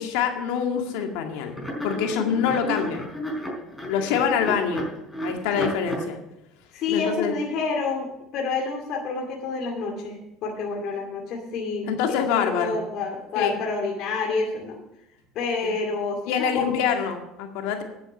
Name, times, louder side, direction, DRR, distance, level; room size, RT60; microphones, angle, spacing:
voice 1, 0.0-1.5 1.8-3.1 3.9-4.9 5.2-6.2 6.9-7.3 11.8-12.7 13.4-13.5 15.6-15.7 16.3-17.8, left 7 dB, 75° left, 4 dB, 2.1 m, -25 dB
sound 1, 0.9-1.2 1.5-6.0, equal, 5° left, 4.7 m, -32 dB
voice 2, 6.7-14.8 15.3-17.0, left 4 dB, 60° left, 1 dB, 2.4 m, -28 dB
10.0 x 7.8 x 7.0 m, 0.85 s
supercardioid pair, 90°, 0 cm